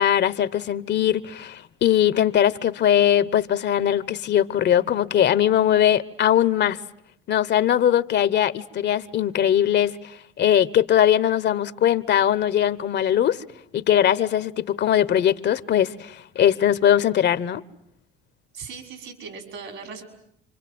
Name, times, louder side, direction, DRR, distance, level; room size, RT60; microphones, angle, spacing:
voice 1, 0.0-6.8 7.3-13.4 13.7-17.6, left 10 dB, 55° left, 1.0 m, -20 dB
voice 2, 18.5-20.0, right 5 dB, 70° right, 5.9 m, -38 dB
28.5 x 25.0 x 7.8 m
supercardioid pair, 70°, 21 cm